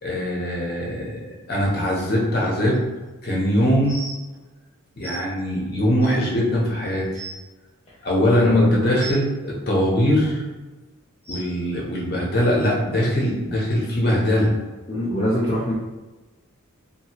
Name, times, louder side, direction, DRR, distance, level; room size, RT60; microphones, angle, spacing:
voice 1, 0.0-1.2 1.5-2.8 3.2-4.0 5.0-7.2 8.0-10.4 11.3-14.5, equal, 45° left, -3 dB, 0.8 m, -21 dB
sound 1, 3.8-4.2 5.0-5.1 6.0-6.1 6.7-6.8 7.0-7.4 9.0-9.2 10.2-10.4 11.2-11.4 12.6-12.7 13.4-13.5 14.2-14.3, right 2 dB, 10° right, 0.7 m, -35 dB
voice 2, 8.4-9.0 14.9-15.7, left 1 dB, 30° left, -8 dB, 0.4 m, -24 dB
2.8 x 2.7 x 2.8 m, 1.2 s
head